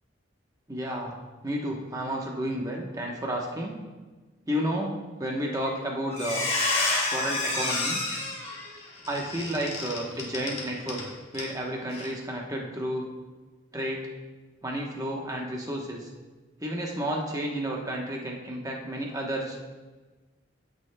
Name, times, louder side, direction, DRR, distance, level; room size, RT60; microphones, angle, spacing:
voice 1, 0.7-1.1 1.4-3.7 4.5-4.9 5.2-6.5 7.1-8.0 9.1-11.0 11.3-13.1 13.7-14.0 14.6-16.1 16.6-19.7, equal, 20° right, -1 dB, 1.0 m, -31 dB
Squeak, 5.5-5.8 6.1-11.0 11.3-11.5 11.9-12.1, left 2 dB, 35° left, 1.7 m, -29 dB
14.5 x 6.4 x 2.2 m, 1.3 s
head